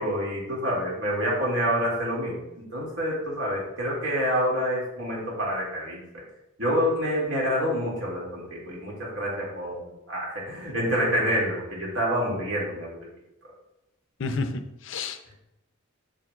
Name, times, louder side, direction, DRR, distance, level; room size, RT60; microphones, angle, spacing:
voice 1, 0.0-6.2 6.6-13.0, equal, 75° right, -4 dB, 2.2 m, -27 dB
voice 2, 14.2-15.3, left 3 dB, 65° left, 8 dB, 0.5 m, -31 dB
7.5 x 6.9 x 2.3 m, 0.90 s
head